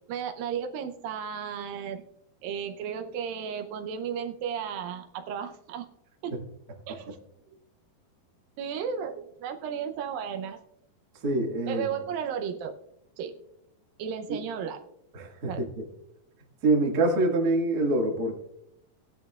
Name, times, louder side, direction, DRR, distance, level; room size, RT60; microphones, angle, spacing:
voice 1, 0.1-2.1 2.4-5.9 6.2-6.4 6.9-7.2 7.5-7.6 8.6-10.6 11.7-12.7 13.2-13.4 14.0-14.8 15.5-15.6, right 7 dB, 80° right, 5 dB, 2.4 m, -34 dB
voice 2, 11.2-11.9 14.3-14.4 15.1-15.8 16.6-18.4, right 2 dB, 35° right, 0 dB, 1.6 m, -25 dB
17.5 x 11.0 x 2.3 m, 0.78 s
omnidirectional pair, 4.2 m